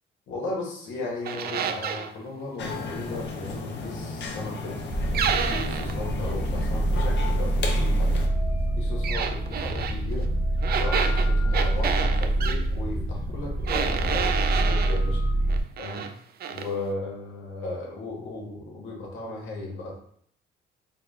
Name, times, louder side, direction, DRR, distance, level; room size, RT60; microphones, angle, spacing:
voice 1, 0.3-4.8 5.3-8.2 8.8-10.3 10.7-15.2 15.8-16.1 16.5-19.9, left 2 dB, 85° left, -1 dB, 1.2 m, -36 dB
sound 1, 1.2-2.1 5.1-6.0 9.0-10.0 10.6-12.6 13.7-15.0 15.5-16.1 16.4-16.7, right 7 dB, 50° right, 0.4 m, -29 dB
sound 2, 2.6-8.3, left 3 dB, 60° left, 0.7 m, -34 dB
sound 3, 4.9-15.6, right 1 dB, 20° right, 0.8 m, -25 dB
4.1 x 2.1 x 3.9 m, 0.64 s
cardioid pair, 90°, 20 cm